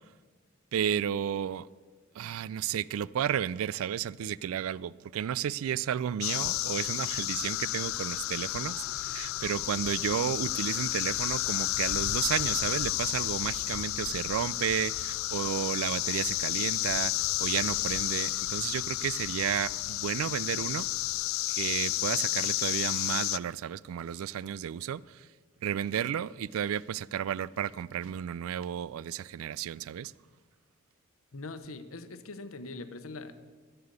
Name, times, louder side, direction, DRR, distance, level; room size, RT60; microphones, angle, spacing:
voice 1, 0.7-1.7 2.1-20.9 21.5-25.3 25.6-30.1, right 9 dB, 80° right, 0.3 m, -32 dB
sound 1, 6.2-23.4, left 16 dB, 70° left, 0.3 m, -31 dB
voice 2, 31.3-33.4, left 3 dB, 90° left, 0.9 m, -42 dB
13.5 x 6.9 x 8.2 m
head